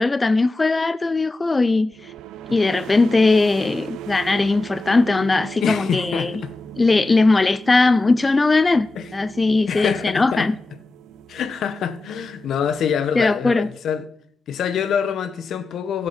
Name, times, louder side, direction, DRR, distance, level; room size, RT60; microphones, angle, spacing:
voice 1, 0.0-2.1 2.5-6.3 6.8-8.9 9.1-10.6 13.2-13.7, left 3 dB, 25° left, 0.4 m, -19 dB
sound 1, 1.9-13.5, right 12 dB, 85° right, 0.6 m, -39 dB
voice 2, 5.6-6.5 9.0-9.1 9.7-10.5 11.3-14.0 14.5-16.1, left 8 dB, 70° left, 1.0 m, -25 dB
13.5 x 7.3 x 5.7 m
cardioid pair, 90°, 0 cm